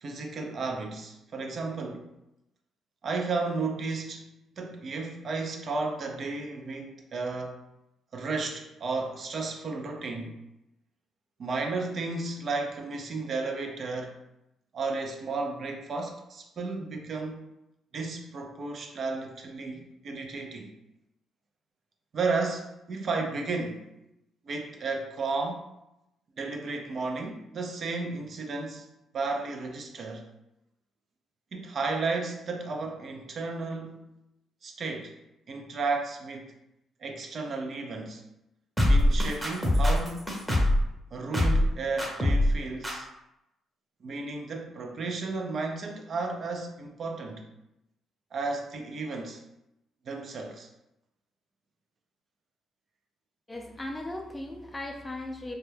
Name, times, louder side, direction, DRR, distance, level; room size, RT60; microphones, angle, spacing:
voice 1, 0.0-2.1 3.0-4.3 4.6-7.6 8.1-10.4 11.4-14.2 14.7-17.4 17.9-20.7 22.1-23.9 24.4-25.7 26.4-28.9 29.1-30.2 31.5-34.0 34.6-35.2 35.5-36.5 37.0-38.2 38.9-40.3 41.1-43.1 44.0-47.4 48.3-49.4 50.0-50.7, right 3 dB, 50° right, 3 dB, 0.4 m, -33 dB
sound 1, 38.8-40.8 41.3-41.7 42.0-42.5 42.8-42.9, left 1 dB, 5° right, 0.7 m, -23 dB
voice 2, 53.5-55.5, left 1 dB, 15° left, 3 dB, 0.3 m, -37 dB
2.2 x 2.1 x 3.1 m, 0.87 s
cardioid pair, 90°, 0 cm